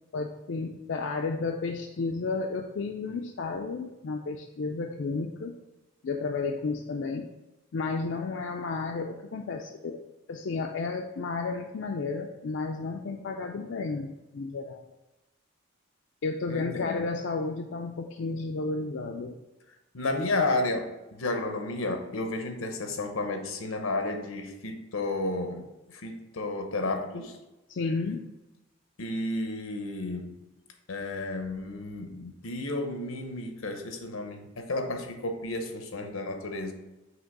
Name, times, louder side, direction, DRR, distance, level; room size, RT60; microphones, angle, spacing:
voice 1, 0.1-5.6 6.0-7.3 7.7-10.0 10.3-14.8 16.2-19.4 27.7-28.3, left 4 dB, 60° left, 2 dB, 0.4 m, -32 dB
voice 2, 16.5-17.0 19.9-25.6 25.9-27.4 29.0-30.4 30.9-36.7, left 2 dB, 85° left, 6 dB, 0.8 m, -32 dB
6.2 x 2.9 x 5.3 m, 1.0 s
head